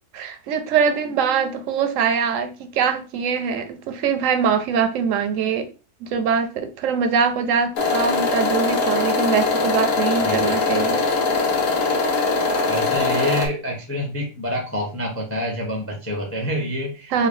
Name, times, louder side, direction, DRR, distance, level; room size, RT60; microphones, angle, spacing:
voice 1, 0.1-5.7 6.0-11.4 17.1-17.3, right 6 dB, 65° right, 0.9 m, -23 dB
sound 1, 7.8-13.5, left 4 dB, 70° left, 1.3 m, -21 dB
voice 2, 10.2-10.7 12.7-17.1, left 1 dB, 20° left, 0.4 m, -27 dB
3.7 x 2.3 x 3.5 m
omnidirectional pair, 1.6 m